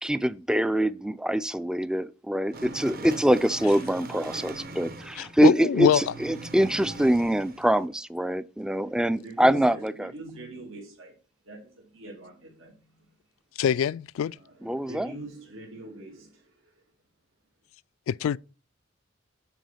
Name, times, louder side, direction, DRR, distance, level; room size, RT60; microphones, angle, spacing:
voice 1, 0.0-10.1 14.6-15.1, right 1 dB, 5° right, 0.3 m, -24 dB
sound 1, 2.5-5.5 5.9-7.9, right 2 dB, 45° right, 1.2 m, -41 dB
voice 2, 5.2-6.1 13.6-14.4 18.1-18.4, left 8 dB, 90° left, 0.3 m, -24 dB
voice 3, 8.8-13.1 14.3-16.8, right 1 dB, 80° right, 2.2 m, -44 dB
9.2 x 4.7 x 5.6 m
head